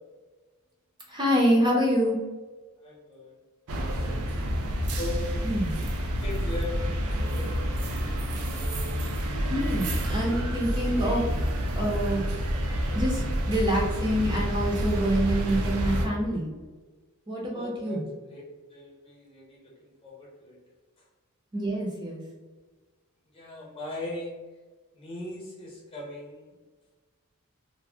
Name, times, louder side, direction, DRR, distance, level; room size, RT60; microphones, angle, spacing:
voice 1, 1.1-2.2 5.4-5.7 9.5-11.2 11.8-12.3 12.9-13.2 13.5-16.5 17.3-18.0 21.5-22.2, equal, 20° right, -4 dB, 0.5 m, -26 dB
voice 2, 2.8-3.4 5.0-5.5 6.2-8.0 17.5-18.0 18.3-18.4 18.7-20.6 23.3-24.4 24.9-26.5, left 2 dB, 25° left, -4 dB, 0.8 m, -39 dB
sound 1, 3.7-16.1, equal, 80° right, 0.5 m, -28 dB
2.6 x 2.0 x 3.3 m, 1.3 s
head